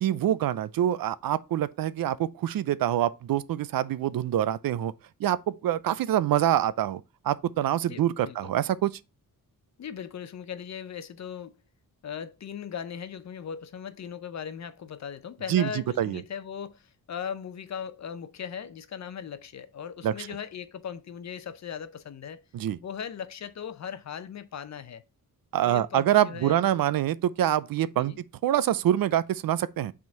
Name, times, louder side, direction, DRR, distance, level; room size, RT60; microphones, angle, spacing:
voice 1, 0.0-4.9 5.2-8.9 15.5-16.2 20.0-20.1 22.5-22.8 25.5-28.1 28.4-29.9, right 11 dB, 70° right, 0.5 m, -25 dB
voice 2, 7.9-8.5 9.8-11.5 12.0-22.4 22.8-25.0 25.6-26.6 27.9-28.2, left 8 dB, 50° left, 0.6 m, -38 dB
6.1 x 3.7 x 4.3 m
wide cardioid pair, 115°, 36 cm